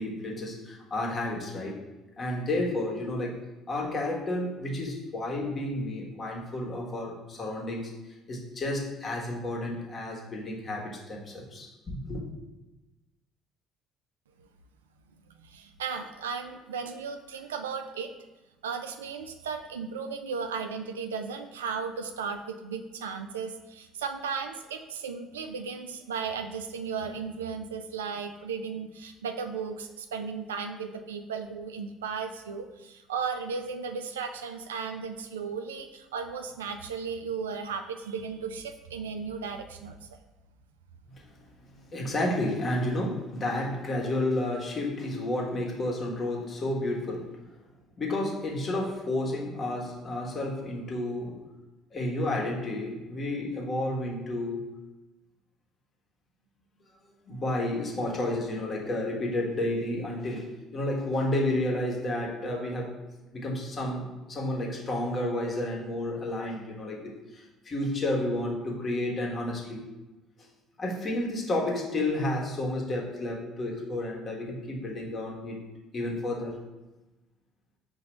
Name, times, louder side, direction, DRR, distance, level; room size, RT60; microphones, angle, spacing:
voice 1, 0.0-1.8 2.2-3.4 3.7-7.9 8.3-12.2 41.2-41.3 41.9-47.4 48.0-51.4 51.9-54.7 57.3-63.0 63.3-69.9 70.8-75.7 75.9-76.6, left 1 dB, 40° left, -2 dB, 1.3 m, -31 dB
voice 2, 15.4-18.1 18.6-40.1, right 5 dB, 85° right, 7 dB, 0.3 m, -35 dB
5.8 x 2.6 x 3.2 m, 1.1 s
hypercardioid pair, 55°, 0 cm